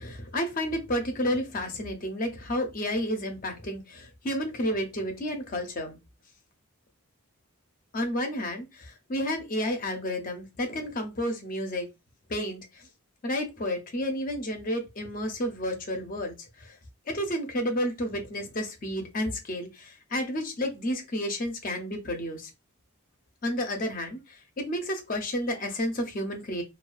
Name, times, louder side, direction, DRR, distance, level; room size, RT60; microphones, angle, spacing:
voice 1, 0.0-6.0 7.9-11.9 12.3-12.9 13.2-16.7 17.1-22.5 23.4-26.6, equal, 40° left, 5 dB, 0.5 m, -31 dB
2.3 x 2.3 x 2.3 m, 0.24 s
head